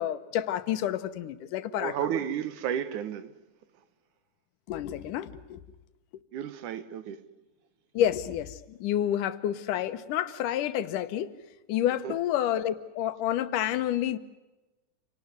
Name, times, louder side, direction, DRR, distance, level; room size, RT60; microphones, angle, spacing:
voice 1, 0.0-2.0 4.7-5.6 7.9-11.3 11.7-14.2, left 11 dB, 80° left, 2.5 m, -29 dB
voice 2, 1.8-3.3 6.3-7.2 12.0-12.2, right 9 dB, 70° right, 2.5 m, -32 dB
28.0 x 19.0 x 9.5 m
omnidirectional pair, 3.7 m